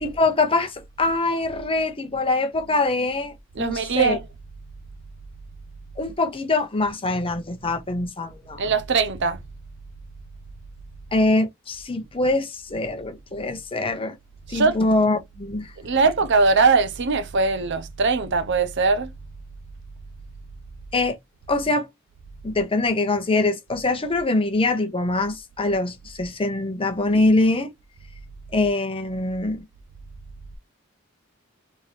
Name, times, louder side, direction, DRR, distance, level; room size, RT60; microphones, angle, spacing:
voice 1, 0.0-4.2 6.0-8.6 11.1-14.2 14.5-15.7 20.9-21.2 21.5-21.9 22.4-27.7 28.5-29.6, left 2 dB, 25° left, 1.0 m, -23 dB
voice 2, 3.5-4.3 8.6-9.4 14.5-14.8 15.8-19.1, right 4 dB, 60° right, 0.7 m, -21 dB
3.7 x 3.1 x 4.2 m
head